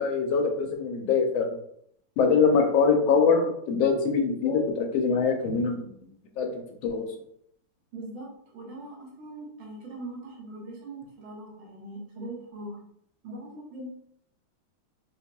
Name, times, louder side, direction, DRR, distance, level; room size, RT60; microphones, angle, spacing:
voice 1, 0.0-1.5 2.2-5.9 6.4-6.5 6.8-7.1, left 5 dB, 85° left, 3 dB, 1.5 m, -23 dB
voice 2, 7.9-12.8 13.2-13.9, right 1 dB, 80° right, -3 dB, 1.9 m, -41 dB
4.4 x 2.7 x 2.2 m, 0.69 s
omnidirectional pair, 2.2 m